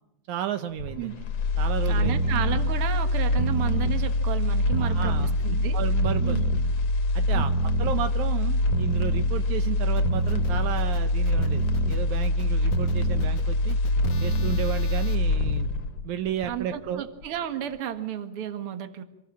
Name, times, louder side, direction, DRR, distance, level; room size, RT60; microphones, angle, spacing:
voice 1, 0.3-1.2 1.6-2.2 4.8-6.4 7.1-13.8 14.2-15.7 16.0-17.0, right 10 dB, 75° right, 9 dB, 2.3 m, -33 dB
sound 1, 0.8-16.9 17.2-17.3, left 1 dB, 60° left, 2.4 m, -24 dB
voice 2, 1.9-5.1 5.4-5.8 6.2-6.4 7.3-7.4 16.4-19.0, right 10 dB, 50° right, 9 dB, 2.3 m, -32 dB
sound 2, 10.0-15.1, left 4 dB, 40° left, 1.9 m, -41 dB
27.0 x 19.0 x 7.4 m, 0.90 s
omnidirectional pair, 3.5 m